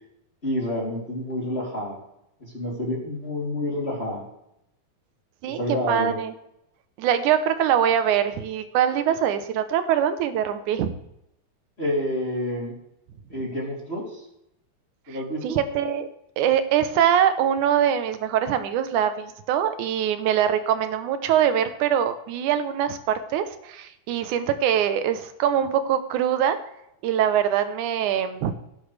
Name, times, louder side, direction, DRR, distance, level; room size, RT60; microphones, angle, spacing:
voice 1, 0.4-2.0 2.4-4.2 5.5-6.1 11.8-12.7 13.3-14.2 15.1-15.6, left 1 dB, 15° left, -4 dB, 3.1 m, -28 dB
voice 2, 5.4-6.3 7.0-10.9 15.4-16.1 16.4-26.6 27.0-28.5, right 9 dB, 70° right, 10 dB, 2.1 m, -23 dB
18.5 x 10.0 x 3.4 m, 0.81 s
omnidirectional pair, 4.2 m